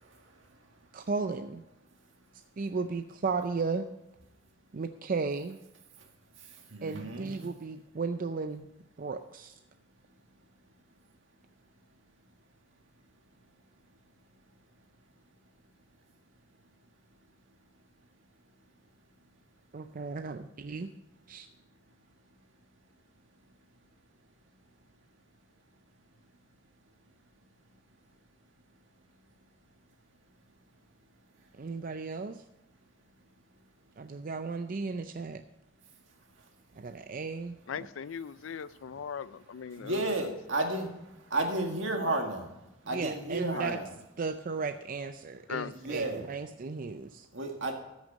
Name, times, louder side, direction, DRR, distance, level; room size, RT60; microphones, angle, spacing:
voice 1, 0.9-1.6 2.6-3.9 4.7-5.6 6.8-8.7 9.0-9.5 19.7-20.9 21.3-21.5 31.5-32.4 34.0-35.4 36.8-37.6 42.9-43.8 44.2-47.3, right 4 dB, 45° right, 8 dB, 0.5 m, -35 dB
voice 2, 6.7-7.4 39.8-40.9 41.3-42.5 42.9-43.9 45.8-46.2 47.3-47.7, right 2 dB, 75° right, 3 dB, 1.9 m, -32 dB
voice 3, 37.7-40.3 42.0-42.2 43.5-43.8 45.5-46.0, left 6 dB, 80° left, 17 dB, 0.4 m, -39 dB
13.5 x 6.4 x 5.2 m, 0.94 s
head